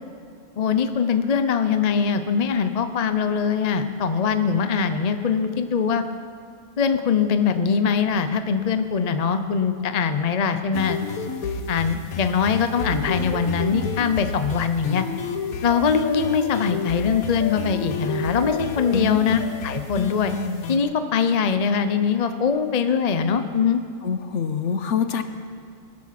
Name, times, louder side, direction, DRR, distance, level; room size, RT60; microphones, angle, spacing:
voice 1, 0.6-6.0 6.8-11.0 11.7-15.0 15.6-20.3 20.7-23.8, left 6 dB, 40° left, 9 dB, 0.5 m, -22 dB
sound 1, 10.7-20.8, left 5 dB, 75° left, 1.4 m, -30 dB
voice 2, 24.0-25.2, left 6 dB, 60° left, 10 dB, 1.0 m, -25 dB
19.5 x 12.5 x 5.9 m, 2.3 s
omnidirectional pair, 1.5 m